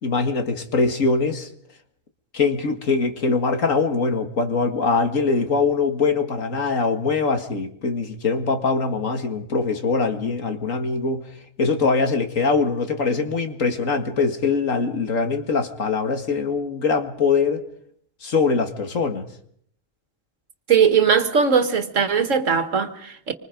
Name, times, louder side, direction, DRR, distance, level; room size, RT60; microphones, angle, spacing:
voice 1, 0.0-1.5 2.3-11.3 11.6-17.6 18.2-19.3, left 4 dB, 70° left, 2.3 m, -22 dB
voice 2, 20.7-23.3, right 6 dB, 65° right, 2.0 m, -19 dB
26.5 x 25.0 x 5.3 m
omnidirectional pair, 1.4 m